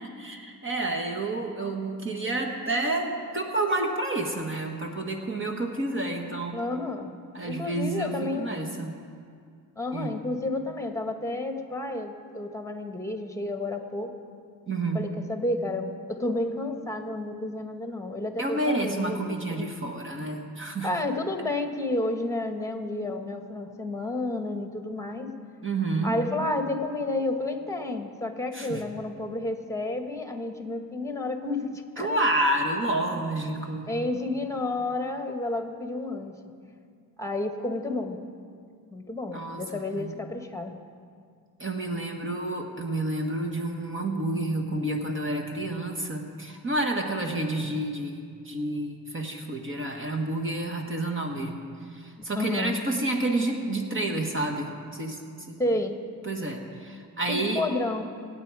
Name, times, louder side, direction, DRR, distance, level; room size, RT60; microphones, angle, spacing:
voice 1, 0.0-6.6 7.3-9.0 9.9-10.2 14.7-15.1 18.4-20.9 25.6-26.1 28.5-28.8 32.0-33.9 39.3-40.2 41.6-51.6 51.9-55.2 55.5-55.6 56.2-57.6, right 2 dB, 35° right, 3 dB, 1.5 m, -29 dB
voice 2, 6.5-7.1 7.4-8.5 9.8-14.1 14.9-19.7 20.8-25.3 26.0-32.2 33.9-36.4 37.2-38.2 38.9-40.8 52.3-52.9 55.6-55.9 57.3-58.0, left 2 dB, 10° left, 5 dB, 1.4 m, -31 dB
25.5 x 9.0 x 4.9 m, 2.2 s
cardioid pair, 110°, 34 cm